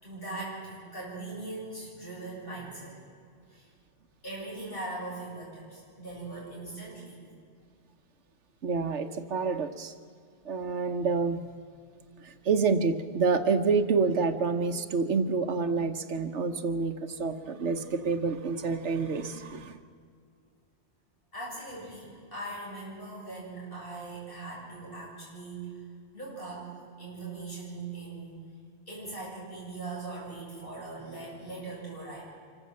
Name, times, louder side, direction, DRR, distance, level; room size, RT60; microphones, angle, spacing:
voice 1, 0.0-3.0 3.5-3.7 4.2-7.3 21.3-25.7 26.1-28.4 28.9-32.2, right 2 dB, 50° left, -5 dB, 8.2 m, -40 dB
voice 2, 8.6-9.9 10.4-11.4 12.2-19.8, right 4 dB, 75° right, 9 dB, 1.3 m, -28 dB
25.5 x 14.5 x 7.6 m, 2.2 s
omnidirectional pair, 1.2 m